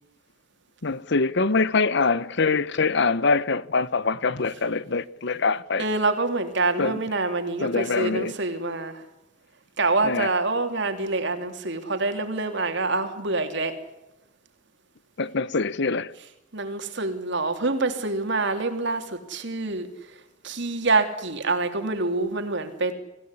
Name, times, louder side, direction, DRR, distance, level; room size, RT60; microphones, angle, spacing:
voice 1, 0.8-5.8 6.8-7.0 7.6-8.4 10.0-10.3 15.2-16.2, left 4 dB, 60° left, 1.0 m, -24 dB
voice 2, 5.8-9.0 9.8-13.7 16.5-19.9 20.4-22.9, right 3 dB, 65° right, 3.3 m, -26 dB
25.5 x 17.0 x 10.0 m
head